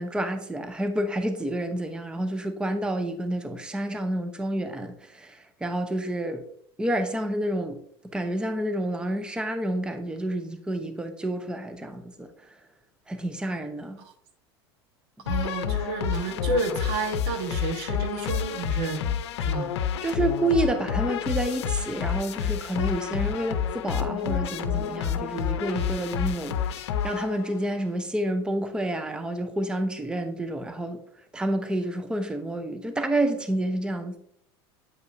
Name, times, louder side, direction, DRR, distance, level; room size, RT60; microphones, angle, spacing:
voice 1, 0.0-6.4 6.8-7.8 8.1-12.3 13.1-14.0 20.0-31.0 31.3-34.2, right 1 dB, 5° right, 0.7 m, -29 dB
sound 1, 15.3-27.7, left 8 dB, 80° left, 0.6 m, -29 dB
voice 2, 15.3-19.1 19.4-19.7, right 3 dB, 70° right, 1.2 m, -30 dB
8.4 x 5.2 x 2.6 m
hypercardioid pair, 95°, 14 cm